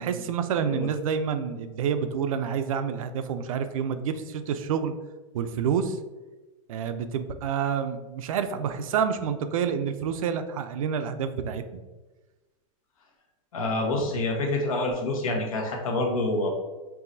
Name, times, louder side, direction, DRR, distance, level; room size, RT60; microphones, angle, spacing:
voice 1, 0.0-4.9 5.3-6.0 6.7-11.8, right 7 dB, 80° right, 9 dB, 0.5 m, -28 dB
voice 2, 13.5-16.5, left 2 dB, 90° left, 1 dB, 1.1 m, -27 dB
4.7 x 3.1 x 2.6 m, 1.2 s
supercardioid pair, 155°, 17 cm